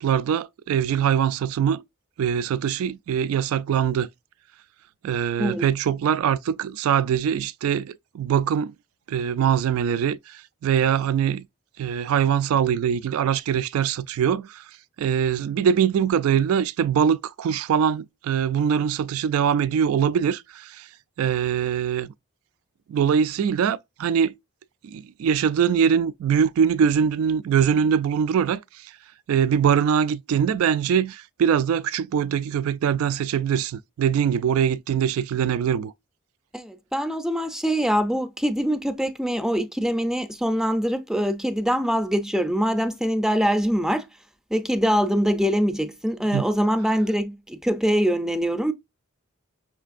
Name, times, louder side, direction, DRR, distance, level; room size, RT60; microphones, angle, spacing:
voice 1, 0.0-1.8 2.2-4.1 5.0-8.7 9.1-11.5 11.8-14.6 15.0-20.9 21.2-22.1 22.9-24.3 24.8-28.9 29.3-35.9 46.3-46.4, right 8 dB, 75° right, 0.3 m, -23 dB
voice 2, 36.5-44.1 44.5-48.7, equal, ahead, 0.4 m, -23 dB
5.6 x 3.2 x 2.5 m
head